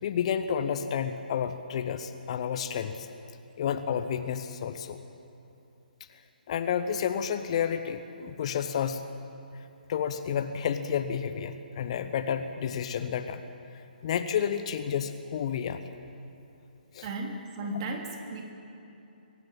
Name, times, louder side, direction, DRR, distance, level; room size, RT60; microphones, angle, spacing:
voice 1, 0.0-3.1 3.6-5.0 6.5-9.0 9.9-13.4 14.0-15.8 16.9-17.1, left 8 dB, 40° left, 10 dB, 1.0 m, -30 dB
voice 2, 17.0-18.5, right 2 dB, 35° right, 2 dB, 3.0 m, -35 dB
23.5 x 17.0 x 8.7 m, 2.8 s
figure-of-eight pair, 135°, 5 cm